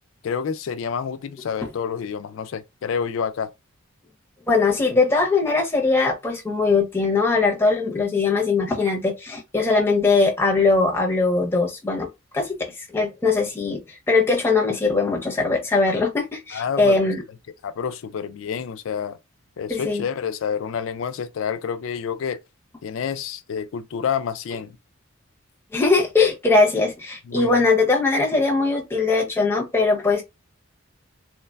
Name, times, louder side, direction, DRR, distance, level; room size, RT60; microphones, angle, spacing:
voice 1, 0.2-3.5 16.5-17.1 17.6-19.2 19.6-22.4 22.8-24.8 27.3-27.5, left 7 dB, 70° left, 0.3 m, -28 dB
voice 2, 4.5-12.1 12.3-12.7 12.9-17.2 19.7-20.0 25.7-30.2, left 3 dB, 10° left, 0.6 m, -20 dB
3.1 x 2.1 x 2.2 m
head